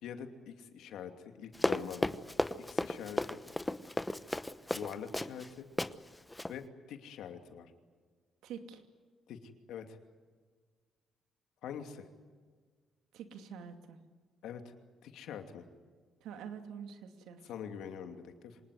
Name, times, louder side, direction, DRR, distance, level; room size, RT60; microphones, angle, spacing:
voice 1, 0.0-2.1 2.6-3.2 4.7-5.7 6.5-7.7 9.3-10.0 11.6-12.1 14.4-14.7 15.0-15.6 17.4-18.6, left 8 dB, 85° left, 6 dB, 2.6 m, -44 dB
Run, 1.5-5.5 5.8-5.9 6.3-6.5, left 1 dB, 10° left, 1.0 m, -34 dB
voice 2, 8.4-8.8 13.1-14.0 16.2-17.4, right 7 dB, 90° right, 7 dB, 2.6 m, -46 dB
25.5 x 20.0 x 9.5 m, 1.5 s
cardioid pair, 90°, 0 cm